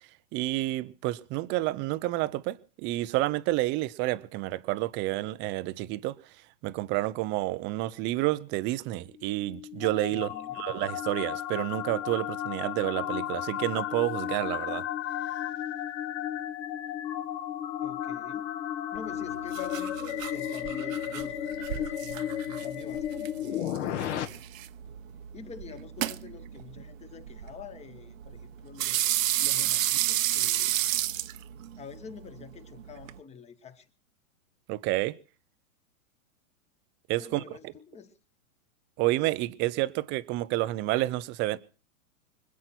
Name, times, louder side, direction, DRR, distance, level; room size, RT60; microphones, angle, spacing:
voice 1, 0.3-6.2 6.6-10.3 10.5-14.8 34.7-35.1 37.1-37.4 39.0-41.6, right 18 dB, 25° right, 0.8 m, -29 dB
sound 1, 9.2-24.2, left 11 dB, 55° left, 2.5 m, -34 dB
voice 2, 10.1-10.7 17.8-18.5 18.9-24.2 25.3-30.7 31.8-33.9 37.2-38.1, left 6 dB, 15° left, 1.6 m, -47 dB
sound 2, 18.9-33.2, right 13 dB, 65° right, 1.2 m, -33 dB
25.5 x 8.6 x 6.1 m
hypercardioid pair, 145°, 43 cm